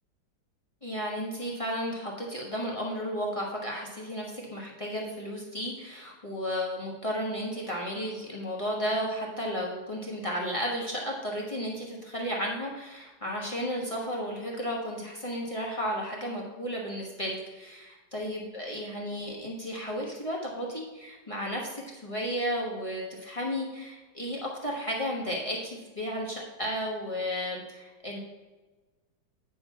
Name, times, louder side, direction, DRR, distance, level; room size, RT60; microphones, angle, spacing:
voice 1, 0.8-28.2, equal, 20° left, -3 dB, 1.2 m, -33 dB
9.2 x 4.2 x 5.7 m, 1.2 s
omnidirectional pair, 2.1 m